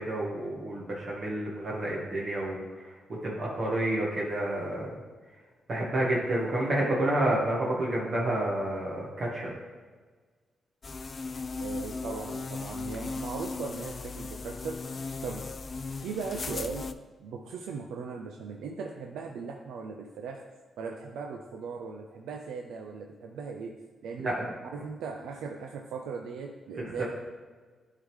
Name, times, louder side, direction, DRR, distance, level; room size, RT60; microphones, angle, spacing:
voice 1, 0.0-2.9 3.2-4.9 5.7-9.6 24.2-24.5 26.8-27.1, right 1 dB, 55° right, -4 dB, 1.4 m, -29 dB
sound 1, 10.8-16.9, left 4 dB, 45° left, 0.3 m, -37 dB
voice 2, 11.6-14.8 15.2-15.4 16.0-16.9 17.2-20.4 20.8-24.3 24.6-27.0, right 5 dB, 85° right, 2 dB, 0.4 m, -38 dB
9.7 x 3.7 x 3.2 m, 1.4 s
cardioid pair, 70°, 0 cm